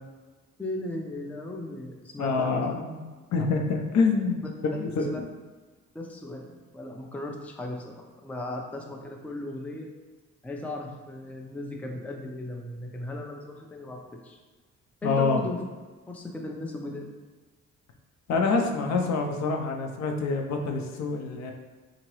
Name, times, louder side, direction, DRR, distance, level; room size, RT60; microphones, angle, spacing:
voice 1, 0.6-2.6 4.7-5.2 5.9-9.9 10.4-14.4 15.0-15.6 16.1-17.0, left 2 dB, 5° left, 1 dB, 0.4 m, -36 dB
voice 2, 2.2-3.0 3.3-4.4 4.8-5.3 15.0-15.4 18.3-21.5, left 4 dB, 65° left, 3 dB, 0.6 m, -26 dB
3.7 x 2.9 x 3.1 m, 1.3 s
cardioid pair, 90°, 30 cm